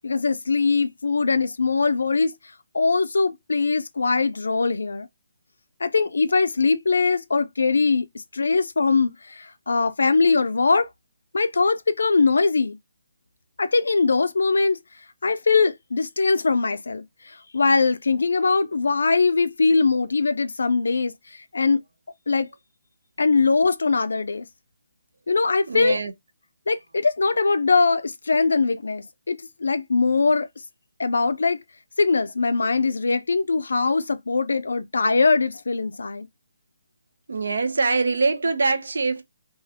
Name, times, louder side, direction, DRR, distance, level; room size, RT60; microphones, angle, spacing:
voice 1, 0.0-2.3 2.7-5.1 5.8-8.1 8.3-10.9 11.3-12.8 13.6-14.8 15.2-21.8 22.3-22.5 23.2-24.5 25.3-26.0 26.7-30.5 31.0-31.6 32.0-36.3, left 4 dB, 85° left, 0.3 m, -21 dB
voice 2, 25.7-26.1 37.3-39.2, right 4 dB, 75° right, 0.5 m, -23 dB
2.3 x 2.1 x 2.7 m
hypercardioid pair, 170°, 0 cm